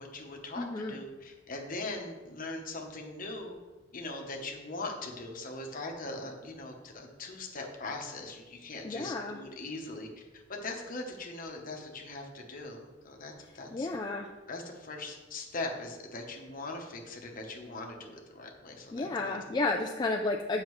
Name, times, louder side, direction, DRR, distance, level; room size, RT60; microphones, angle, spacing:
voice 1, 0.0-3.6 3.9-10.1 10.3-13.9 14.5-19.4, left 2 dB, 45° left, 2 dB, 0.9 m, -41 dB
voice 2, 0.6-1.0 8.8-9.4 13.7-14.3 18.9-20.6, left 2 dB, 20° left, 1 dB, 0.3 m, -32 dB
7.5 x 5.7 x 3.1 m, 1.2 s
head